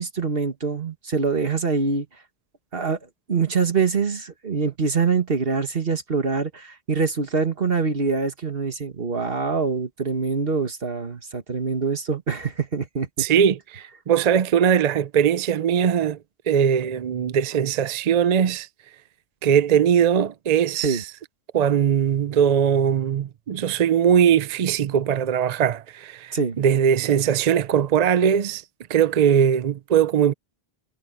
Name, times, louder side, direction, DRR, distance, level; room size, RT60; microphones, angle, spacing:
voice 1, 0.0-2.1 2.7-3.0 3.3-13.3 20.8-21.0 26.3-26.6, right 5 dB, 65° right, 2.0 m, -24 dB
voice 2, 13.2-16.2 16.5-18.7 19.4-21.1 21.5-28.6 28.9-30.3, right 8 dB, 50° right, 0.5 m, -20 dB
omnidirectional pair, 1.0 m